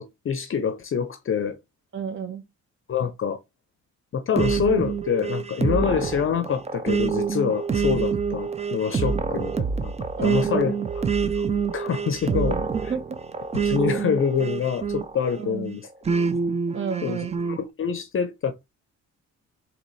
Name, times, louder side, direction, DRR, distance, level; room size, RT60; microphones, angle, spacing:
voice 1, 0.0-1.6 2.9-3.4 4.1-9.9 10.2-11.4 11.7-12.6 13.5-15.9 17.0-18.5, left 7 dB, 45° left, 0.6 m, -26 dB
voice 2, 1.9-2.4 10.2-10.7 12.2-13.2 15.4-15.7 16.7-17.4, right 7 dB, 40° right, 0.9 m, -31 dB
sound 1, 4.4-15.4 16.1-17.6, right 5 dB, 20° right, 0.4 m, -26 dB
4.0 x 2.9 x 3.1 m
cardioid pair, 90°, 30 cm